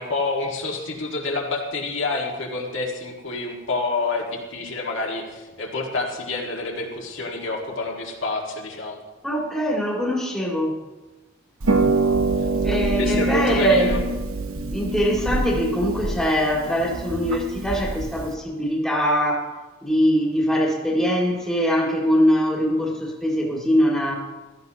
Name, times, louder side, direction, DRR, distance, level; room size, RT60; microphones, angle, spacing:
voice 1, 0.0-9.0 13.0-14.0, left 3 dB, 60° left, -1 dB, 1.8 m, -28 dB
voice 2, 9.2-10.8 12.6-14.1 14.7-19.5 19.8-24.1, equal, ahead, -3 dB, 2.1 m, -22 dB
Harp, 11.6-18.3, right 3 dB, 80° right, 1.0 m, -25 dB
16.0 x 13.5 x 2.9 m, 1.2 s
head